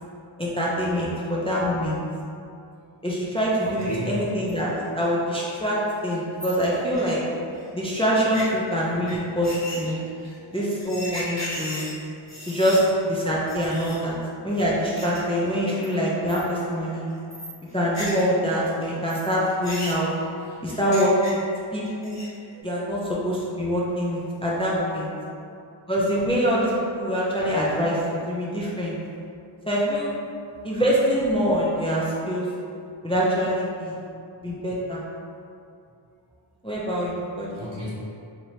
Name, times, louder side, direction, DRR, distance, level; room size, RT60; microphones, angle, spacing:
voice 1, 0.4-2.0 3.0-7.2 7.7-10.0 10.5-11.9 12.5-12.8 13.0-14.2 14.4-17.1 17.7-20.1 20.6-21.4 21.7-22.2 22.6-25.1 25.9-29.0 29.7-30.1 30.6-32.5 33.0-34.0 34.4-35.0 36.6-37.7, equal, 10° left, -7 dB, 0.5 m, -24 dB
sound 1, 3.6-4.1 4.5-4.6 5.0-5.1 5.4-5.5 5.7-5.8 6.0-7.6 8.2-8.4 9.1-9.2 9.4-12.8 13.2-13.3 13.5-14.0 14.5-15.2 15.4-15.9 16.3-16.6 16.9-18.3 18.6-21.6 21.9-22.4, left 1 dB, 35° left, 1.1 m, -37 dB
voice 2, 3.6-4.1 12.1-12.5 22.5-22.7 24.5-25.2 37.5-37.9, right 2 dB, 55° right, -7 dB, 1.1 m, -37 dB
3.1 x 2.8 x 2.7 m, 2.5 s
wide cardioid pair, 40°, 49 cm